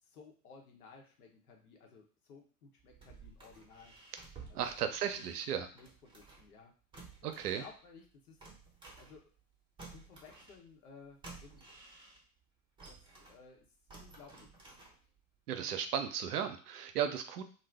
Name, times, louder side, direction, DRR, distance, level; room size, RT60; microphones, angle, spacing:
voice 1, 0.0-4.0 4.5-5.3 5.6-6.7 7.2-8.5 8.9-9.3 9.9-11.8 12.9-13.6 14.0-14.5 17.0-17.2, left 5 dB, 65° left, 2 dB, 0.9 m, -57 dB
sound 1, 2.8-6.6 6.9-9.5 9.8-12.4 12.8-15.3 15.7-15.8, right 4 dB, 10° right, 0.8 m, -54 dB
voice 2, 4.5-5.7 7.2-7.6 15.5-17.4, right 8 dB, 70° right, 7 dB, 0.6 m, -35 dB
2.6 x 2.2 x 3.3 m, 0.40 s
figure-of-eight pair, 85°, 47 cm